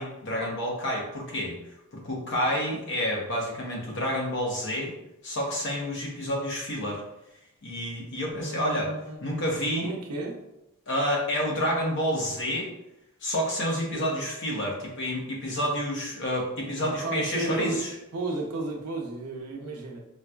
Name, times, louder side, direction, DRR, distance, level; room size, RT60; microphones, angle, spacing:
voice 1, 0.0-1.6 1.9-4.9 5.2-7.0 7.6-8.9 9.2-9.9 10.9-12.7 13.2-17.9, equal, 55° left, -1 dB, 0.8 m, -29 dB
voice 2, 8.3-9.2 9.4-10.4 13.9-14.1 16.8-20.0, right 2 dB, 80° right, 1 dB, 0.6 m, -33 dB
4.1 x 2.3 x 2.3 m, 0.88 s
head